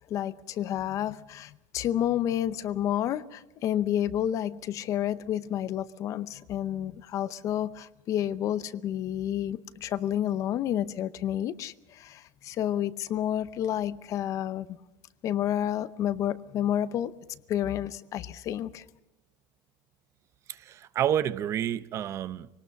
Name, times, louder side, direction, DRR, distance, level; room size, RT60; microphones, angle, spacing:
voice 1, 0.1-14.7 15.2-17.1 17.5-18.8, left 11 dB, 35° left, 0.7 m, -30 dB
voice 2, 20.5-22.5, right 10 dB, 30° right, 0.7 m, -29 dB
24.0 x 19.0 x 6.5 m
cardioid pair, 160°, 9 cm